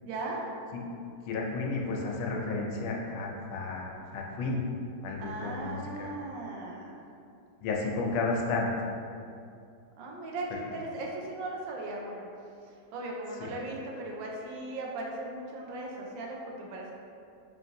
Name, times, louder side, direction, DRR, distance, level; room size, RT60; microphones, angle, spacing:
voice 1, 0.0-0.5 5.2-7.0 10.0-12.3 12.9-16.9, right 2 dB, 80° right, -1 dB, 1.4 m, -38 dB
voice 2, 1.3-4.6 5.0-6.1 7.6-8.7 13.4-13.5, left 3 dB, 85° left, -1 dB, 1.4 m, -32 dB
5.6 x 2.6 x 2.6 m, 2.4 s
omnidirectional pair, 2.2 m